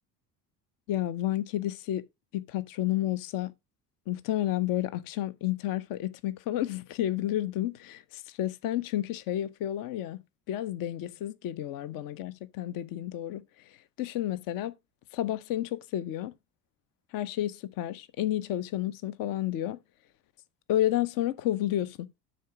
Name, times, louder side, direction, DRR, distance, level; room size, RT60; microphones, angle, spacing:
voice 1, 0.9-2.0 2.3-3.5 4.1-10.2 10.5-14.7 15.1-16.3 17.1-19.8 20.7-22.1, left 13 dB, 45° left, 0.7 m, -31 dB
9.3 x 4.0 x 4.6 m
figure-of-eight pair, 65°, 50 cm